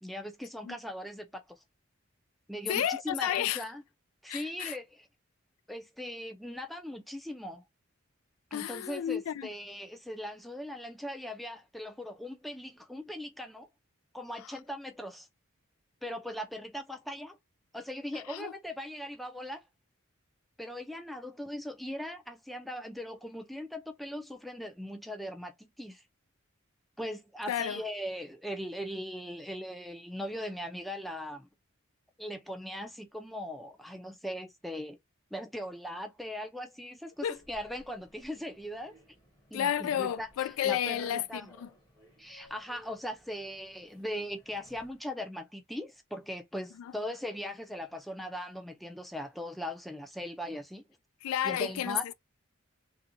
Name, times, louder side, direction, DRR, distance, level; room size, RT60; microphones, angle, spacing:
voice 1, 0.0-1.6 2.5-3.8 4.2-5.1 5.7-7.6 8.5-13.7 14.1-15.3 16.0-17.4 17.7-19.6 20.6-26.0 27.0-31.5 32.2-35.0 35.3-38.9 39.5-40.3 40.6-41.5 42.2-50.8 51.4-52.0, equal, ahead, 0.4 m, -39 dB
voice 2, 2.7-3.7 4.3-4.8 8.5-9.5 14.4-14.6 18.1-18.6 27.5-27.8 37.2-37.4 39.5-41.7 46.8-46.9 51.2-52.1, left 10 dB, 85° left, 0.3 m, -32 dB
Human voice / Subway metro underground, 37.1-45.1, left 1 dB, 20° left, 0.9 m, -60 dB
3.4 x 2.6 x 2.6 m
head